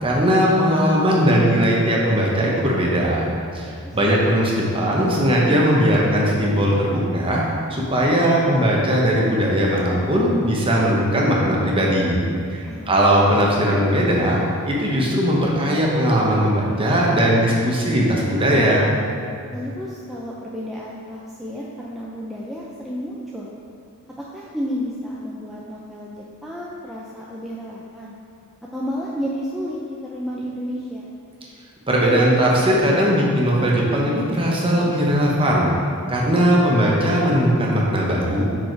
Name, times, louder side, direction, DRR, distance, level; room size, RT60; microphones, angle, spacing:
voice 1, 0.0-3.3 3.5-7.4 7.7-12.2 12.5-18.9 31.9-35.7 36.1-38.4, equal, 25° right, -3 dB, 1.0 m, -19 dB
voice 2, 3.9-4.2 12.7-12.9 19.5-23.5 24.2-28.1 28.7-31.1, equal, ahead, -6 dB, 0.4 m, -31 dB
5.7 x 5.2 x 4.5 m, 2.5 s
head